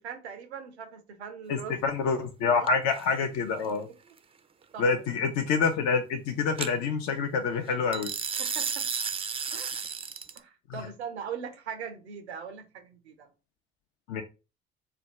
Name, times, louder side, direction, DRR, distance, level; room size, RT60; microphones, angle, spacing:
voice 1, 0.0-1.7 2.5-2.7 4.7-4.9 8.4-8.8 9.5-9.8 10.4-13.3, right 7 dB, 90° right, 0.6 m, -40 dB
voice 2, 1.5-3.9 4.8-8.1 10.7-10.8 14.1-14.2, left 5 dB, 60° left, 0.6 m, -27 dB
sound 1, 2.7-3.1 6.6-6.7 7.9-10.4, right 6 dB, 20° right, 0.4 m, -32 dB
3.4 x 2.2 x 4.3 m
hypercardioid pair, 55°, 32 cm